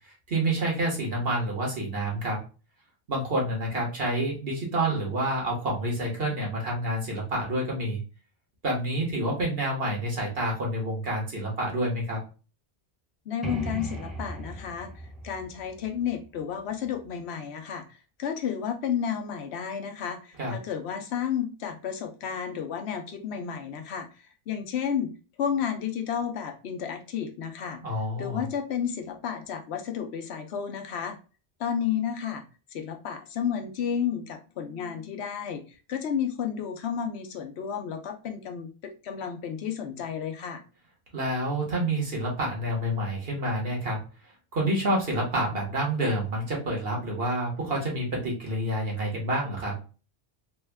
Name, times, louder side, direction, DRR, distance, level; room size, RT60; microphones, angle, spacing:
voice 1, 0.3-2.4 3.1-8.0 8.6-12.2 20.4-20.6 27.8-28.4 41.1-44.0 44.5-49.7, right 1 dB, 65° right, -1 dB, 1.5 m, -28 dB
voice 2, 13.3-14.9 15.2-17.8 18.2-24.1 24.5-25.1 25.4-27.8 28.2-31.2 31.6-32.4 32.7-35.6 35.9-40.6, left 8 dB, 90° left, 6 dB, 0.9 m, -32 dB
sound 1, 13.4-17.1, equal, ahead, 0.5 m, -38 dB
3.5 x 2.3 x 3.3 m, 0.34 s
omnidirectional pair, 1.1 m